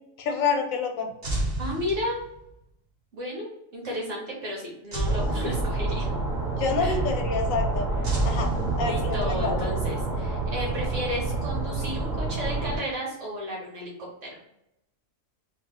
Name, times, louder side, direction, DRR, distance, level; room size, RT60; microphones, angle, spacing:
voice 1, 0.2-1.1 6.6-7.9 8.2-8.5 8.8-9.7, left 5 dB, 85° left, 4 dB, 1.1 m, -27 dB
sound 1, 1.2-2.5 4.9-6.2 8.0-9.3, right 2 dB, 40° right, 0.7 m, -31 dB
voice 2, 1.6-2.2 3.1-6.1 6.8-7.0 8.1-8.3 8.8-13.9 14.2-14.4, left 1 dB, 70° right, -3 dB, 1.5 m, -33 dB
sound 2, 5.1-12.8, right 3 dB, 5° right, 0.8 m, -28 dB
3.2 x 2.4 x 3.3 m, 0.81 s
omnidirectional pair, 1.4 m